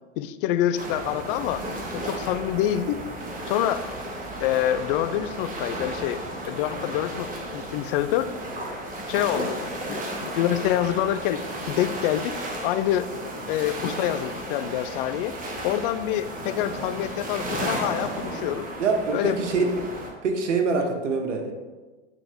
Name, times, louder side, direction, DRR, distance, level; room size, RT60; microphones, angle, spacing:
voice 1, 0.2-3.0 3.5-3.9 4.4-6.2 6.5-8.3 9.1-13.1 13.5-18.7 19.1-19.4, left 12 dB, 50° left, 12 dB, 0.5 m, -26 dB
sound 1, 0.8-20.1, right 1 dB, 25° right, 1.3 m, -34 dB
voice 2, 18.3-19.9 20.2-21.5, right 4 dB, 80° right, 3 dB, 1.2 m, -25 dB
8.9 x 3.9 x 3.4 m, 1.3 s
hypercardioid pair, 105°, 36 cm